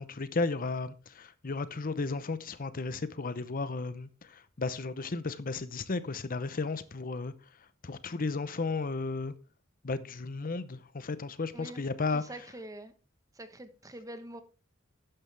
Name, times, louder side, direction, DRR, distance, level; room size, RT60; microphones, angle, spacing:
voice 1, 0.0-7.3 7.8-9.3 9.8-12.2, left 3 dB, 45° left, 0.8 m, -34 dB
voice 2, 12.1-12.9 13.3-14.4, right 1 dB, 15° right, 1.1 m, -45 dB
12.5 x 9.4 x 3.4 m
head